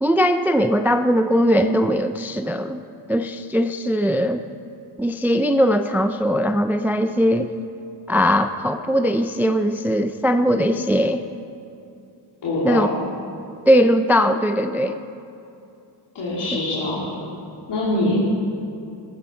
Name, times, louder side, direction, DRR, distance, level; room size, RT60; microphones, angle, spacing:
voice 1, 0.0-2.8 3.1-4.4 5.0-7.5 8.1-11.2 12.6-12.9 13.7-15.0, equal, 5° right, 8 dB, 0.3 m, -19 dB
voice 2, 12.4-13.0 16.1-17.1 17.7-18.2, left 1 dB, 65° left, -8 dB, 3.2 m, -23 dB
14.5 x 14.0 x 4.5 m, 2.6 s
cardioid pair, 95°, 45 cm